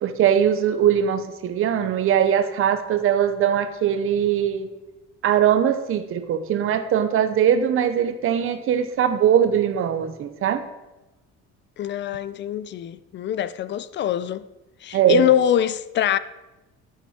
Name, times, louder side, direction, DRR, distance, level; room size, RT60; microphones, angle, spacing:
voice 1, 0.0-4.7 5.2-10.6 14.9-15.3, right 9 dB, 45° right, 0.8 m, -21 dB
voice 2, 11.8-14.5 14.8-16.2, left 10 dB, 40° left, 0.4 m, -23 dB
10.5 x 8.6 x 4.3 m
cardioid pair, 170°, 29 cm